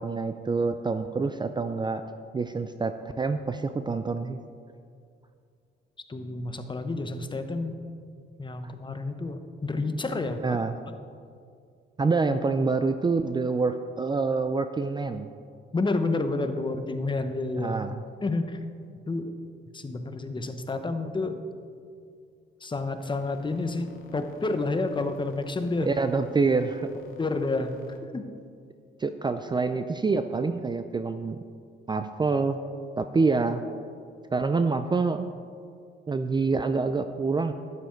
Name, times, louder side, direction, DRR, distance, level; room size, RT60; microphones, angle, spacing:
voice 1, 0.0-2.0 2.3-4.4 10.4-10.7 12.0-15.3 17.6-18.0 25.9-26.9 29.0-31.4 31.9-32.6 33.0-33.6 34.3-35.3 36.1-37.5, right 4 dB, 20° right, 9 dB, 0.5 m, -26 dB
voice 2, 6.1-7.8 8.4-10.6 15.7-17.8 18.2-18.6 19.1-19.4 19.7-21.4 22.6-25.9 27.2-27.7 28.1-28.2, left 3 dB, 25° left, 8 dB, 0.9 m, -29 dB
sound 1, 23.0-28.0, left 4 dB, 85° left, 1.2 m, -52 dB
12.0 x 9.6 x 4.5 m, 2.3 s
cardioid pair, 90°, 20 cm